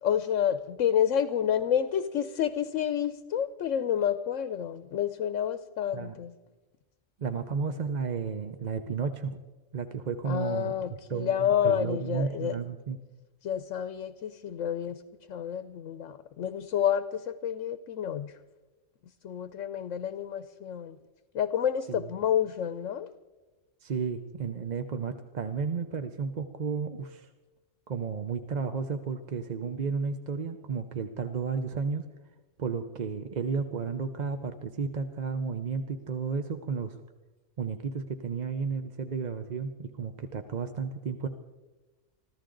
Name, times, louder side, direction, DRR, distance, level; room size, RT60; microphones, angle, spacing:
voice 1, 0.0-6.3 10.3-12.5 13.4-15.0 15.3-18.3 19.2-21.0 21.3-23.1, left 9 dB, 85° left, 12 dB, 1.1 m, -29 dB
voice 2, 7.2-9.4 9.7-10.7 11.1-13.0 21.9-22.1 23.8-27.3 27.9-32.1 32.6-37.0 37.6-41.3, right 5 dB, 40° right, 8 dB, 0.7 m, -33 dB
25.5 x 14.5 x 3.9 m, 1.2 s
omnidirectional pair, 1.3 m